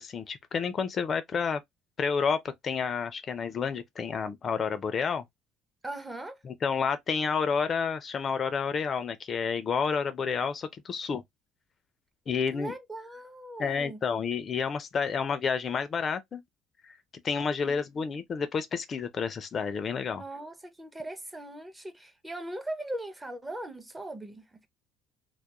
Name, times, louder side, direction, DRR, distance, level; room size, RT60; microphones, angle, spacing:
voice 1, 0.0-1.6 2.0-5.2 6.4-11.2 12.3-12.7 13.6-16.4 17.2-20.2, left 6 dB, 40° left, 0.4 m, -30 dB
voice 2, 5.8-6.4 12.5-14.0 17.7-18.1 20.1-24.7, right 1 dB, 15° right, 0.5 m, -40 dB
2.3 x 2.0 x 2.8 m
supercardioid pair, 95°, 0 cm